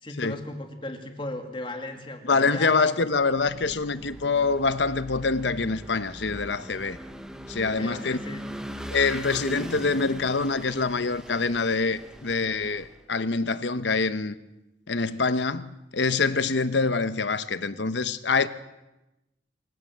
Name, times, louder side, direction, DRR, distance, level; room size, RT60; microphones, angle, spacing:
voice 1, 0.0-2.8 7.8-8.4, left 1 dB, 30° left, 2.4 m, -36 dB
voice 2, 2.2-7.0 7.5-8.2 8.9-14.3 14.9-18.5, left 4 dB, 80° left, 1.0 m, -25 dB
Vehicle / Engine, 3.2-13.0, equal, 5° right, 1.3 m, -40 dB
25.0 x 15.0 x 7.5 m
head